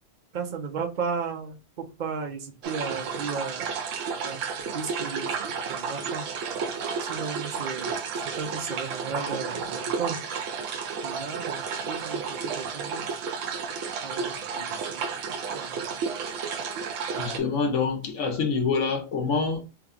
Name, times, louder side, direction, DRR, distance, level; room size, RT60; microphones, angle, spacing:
voice 1, 0.3-3.7 4.2-4.4 4.7-6.3 7.0-10.2 11.0-13.0 14.0-15.1 15.5-16.0 17.2-17.5, right 5 dB, 45° right, 0.7 m, -35 dB
sound 1, 2.6-17.4, right 6 dB, 80° right, 1.0 m, -32 dB
voice 2, 17.2-19.6, left 5 dB, 75° left, 1.1 m, -26 dB
3.4 x 2.2 x 3.6 m
omnidirectional pair, 1.3 m